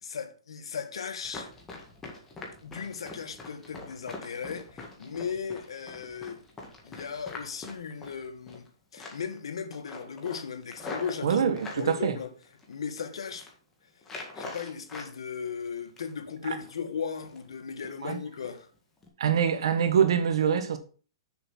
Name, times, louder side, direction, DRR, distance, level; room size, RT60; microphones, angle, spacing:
voice 1, 0.0-1.5 2.6-6.4 6.8-8.7 8.9-11.4 11.7-12.3 12.7-13.5 14.3-18.7, left 6 dB, 85° left, 1.4 m, -37 dB
Run, 1.2-8.7 9.0-9.4 9.7-11.9 12.4-13.0 13.3-13.5 14.0-15.1 15.5-16.3 16.6-16.8 17.2-17.5 17.8-18.0 18.4-18.6 19.0-19.1, left 3 dB, 10° left, 1.8 m, -43 dB
voice 2, 11.2-12.1 18.0-18.2 19.2-20.8, right 7 dB, 70° right, 1.5 m, -24 dB
6.9 x 5.6 x 5.6 m
hypercardioid pair, 160°, 3 cm